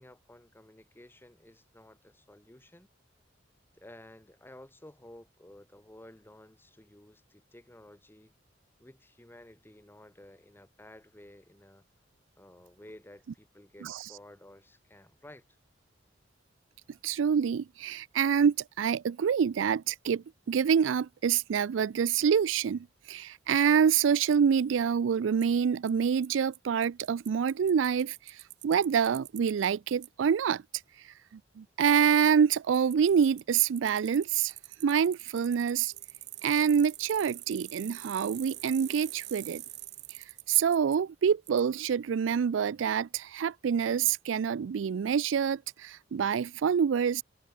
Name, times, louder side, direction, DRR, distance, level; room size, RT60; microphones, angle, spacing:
voice 1, 0.0-2.9 3.7-8.3 8.8-11.8 12.4-15.4, left 1 dB, 10° left, 1.3 m, -53 dB
voice 2, 17.0-30.6 31.6-34.5 34.8-35.9 36.4-39.6 40.1-47.2, right 7 dB, 90° right, 0.4 m, -26 dB
Bicycle, 24.3-24.4 25.4-25.5 25.9-26.0 26.2-26.3 26.5-26.6 26.8-29.7 30.0-30.1 32.1-32.2 32.5-41.0 41.5-41.6, right 15 dB, 60° right, 2.8 m, -45 dB
head